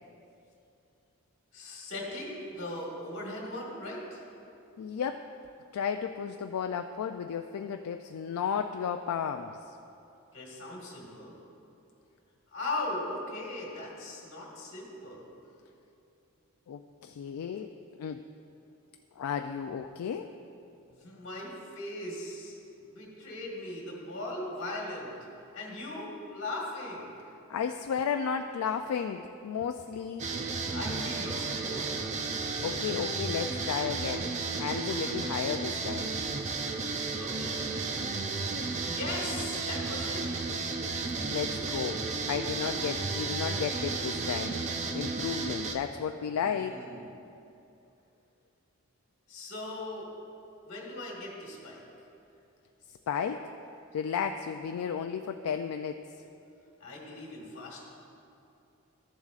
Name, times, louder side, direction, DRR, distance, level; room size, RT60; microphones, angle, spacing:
voice 1, 1.5-4.2 10.3-11.3 12.5-15.3 20.9-25.1 25.5-27.2 30.7-31.9 37.2-37.9 38.8-40.5 45.3-45.4 46.3-47.1 49.3-50.1 50.6-51.8 56.8-57.9, left 2 dB, 55° left, -3 dB, 1.8 m, -39 dB
voice 2, 4.8-5.3 5.7-9.8 16.7-17.7 18.0-18.2 19.2-20.3 27.5-30.3 32.6-34.3 34.6-36.1 41.3-44.6 44.9-46.9 53.1-53.5 53.9-56.0, left 7 dB, 80° left, 6 dB, 0.3 m, -33 dB
sound 1, 30.2-45.8, right 4 dB, 30° right, 0.4 m, -33 dB
13.5 x 7.2 x 2.4 m, 2.7 s
head